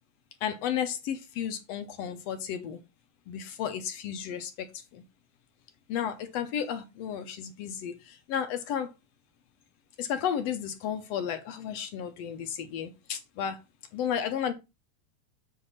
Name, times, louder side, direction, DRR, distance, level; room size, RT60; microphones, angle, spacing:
voice 1, 0.4-2.8 3.3-5.0 5.9-8.9 10.0-13.6 13.9-14.5, left 8 dB, 70° left, 1.8 m, -33 dB
8.4 x 3.4 x 5.5 m
omnidirectional pair, 3.4 m